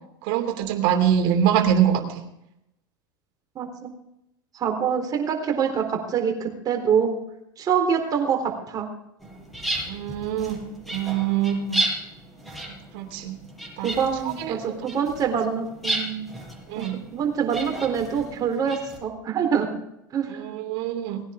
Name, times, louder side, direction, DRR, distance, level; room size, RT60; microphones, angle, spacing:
voice 1, 0.2-2.2 9.9-11.8 12.9-13.4 13.8-13.9 14.4-14.7 16.7-17.0 20.3-21.2, right 9 dB, 60° right, 5 dB, 2.9 m, -24 dB
voice 2, 3.6-3.9 4.5-7.2 7.6-8.9 13.8-16.4 16.8-16.9 17.1-19.8 20.1-20.4, right 7 dB, 35° right, 3 dB, 3.9 m, -25 dB
sound 1, 9.2-19.0, right 2 dB, ahead, 6.4 m, -33 dB
19.5 x 10.0 x 3.8 m, 0.82 s
hypercardioid pair, 95°, 11 cm